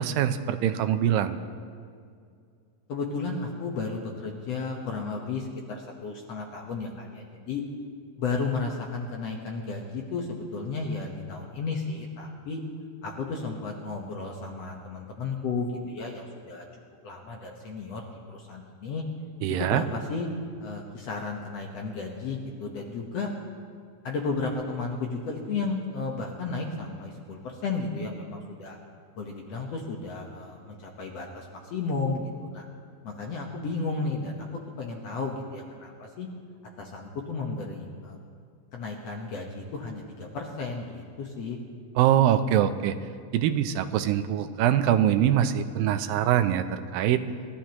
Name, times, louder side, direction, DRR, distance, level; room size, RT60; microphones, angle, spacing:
voice 1, 0.0-1.4 19.4-19.8 42.0-43.0 43.3-47.2, right 10 dB, 85° right, 10 dB, 2.4 m, -23 dB
voice 2, 2.9-7.6 8.2-12.6 13.0-16.6 17.0-19.0 19.6-20.3 20.6-23.3 24.0-28.8 29.2-32.7 33.0-34.5 34.8-36.3 36.8-38.2 38.7-41.6, left 4 dB, 60° left, 0 dB, 1.9 m, -33 dB
28.0 x 14.0 x 3.0 m, 2.3 s
omnidirectional pair, 4.1 m